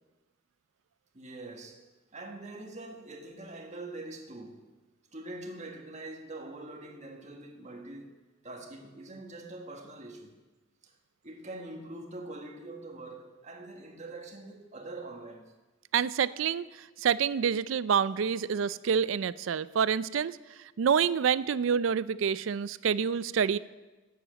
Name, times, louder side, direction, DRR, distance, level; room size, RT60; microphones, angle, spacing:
voice 1, 1.1-4.7 5.1-8.2 8.4-10.4 10.8-10.9 11.2-15.5, right 2 dB, 35° right, 1.5 m, -44 dB
voice 2, 15.9-16.7 17.0-20.4 20.8-23.6, right 7 dB, 75° right, 0.4 m, -27 dB
11.5 x 7.7 x 7.7 m
head